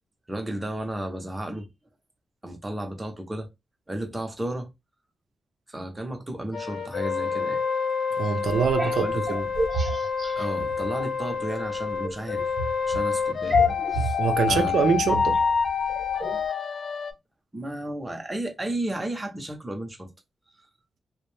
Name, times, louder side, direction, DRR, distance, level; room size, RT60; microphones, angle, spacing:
voice 1, 0.3-1.7 2.4-3.5 3.9-4.7 5.7-7.6 9.0-9.5 10.4-12.5 12.8-13.6 13.9-14.2 14.5-14.7 17.5-20.1, right 1 dB, 10° right, 0.7 m, -33 dB
sound 1, 6.5-17.1, left 6 dB, 50° left, 0.4 m, -27 dB
voice 2, 8.2-9.1 14.2-15.4, right 6 dB, 80° right, 0.5 m, -24 dB
sound 2, 8.4-11.3 11.7-16.5, right 3 dB, 40° right, 1.0 m, -33 dB
2.6 x 2.0 x 3.1 m
wide cardioid pair, 145°, 0 cm